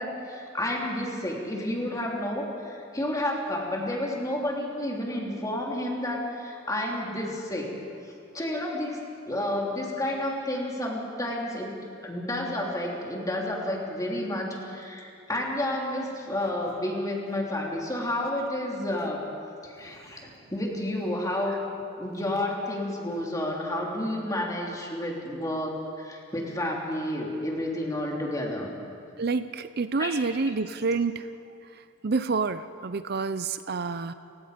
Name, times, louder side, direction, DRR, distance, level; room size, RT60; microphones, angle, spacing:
voice 1, 0.0-7.7 8.3-11.7 12.0-19.2 19.6-21.7 22.0-28.7 30.0-30.2, left 1 dB, 20° left, -2 dB, 3.3 m, -30 dB
voice 2, 29.2-34.1, right 4 dB, 55° right, 12 dB, 0.6 m, -29 dB
29.5 x 17.0 x 5.2 m, 2.6 s
head